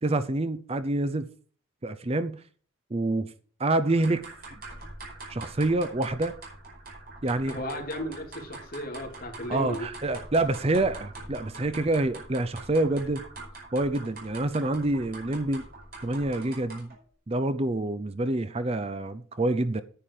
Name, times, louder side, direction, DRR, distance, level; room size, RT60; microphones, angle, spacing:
voice 1, 0.0-1.3 1.8-2.4 2.9-3.3 3.6-4.6 5.3-6.3 7.2-7.6 9.5-13.3 13.7-15.6 16.0-16.9 17.3-19.8, right 2 dB, 30° right, 0.6 m, -27 dB
sound 1, 3.8-17.0, right 2 dB, 45° right, 4.8 m, -44 dB
voice 2, 7.5-9.9, equal, 45° left, 3.0 m, -35 dB
10.0 x 9.1 x 4.9 m
head